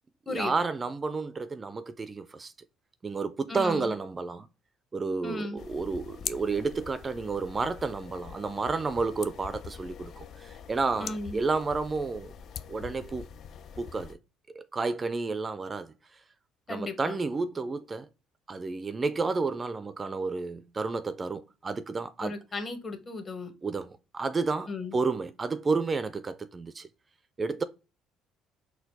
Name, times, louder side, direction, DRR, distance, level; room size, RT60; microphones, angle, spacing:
voice 1, 0.3-2.5 3.0-4.5 4.9-12.3 12.7-13.3 13.8-14.2 14.5-16.2 16.7-18.1 18.5-22.3 23.6-26.9 27.4-27.6, right 4 dB, 25° right, 0.3 m, -31 dB
voice 2, 3.5-3.9 5.2-5.6 11.0-11.4 16.7-17.2 22.2-23.5 24.7-25.0, left 2 dB, 35° left, 0.9 m, -35 dB
sound 1, 5.6-14.1, left 8 dB, 55° left, 0.3 m, -43 dB
4.2 x 2.2 x 3.9 m
cardioid pair, 95°, 0 cm